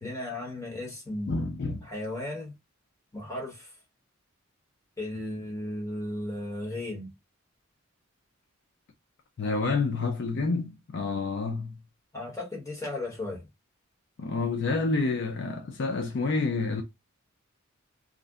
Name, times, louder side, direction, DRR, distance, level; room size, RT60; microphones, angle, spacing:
voice 1, 0.0-2.5 3.1-3.7 5.0-7.1 12.1-13.5, left 1 dB, 15° left, 1.1 m, -35 dB
voice 2, 1.3-1.9 9.4-11.7 14.2-16.8, left 3 dB, 55° left, 0.4 m, -28 dB
2.5 x 2.1 x 3.5 m
head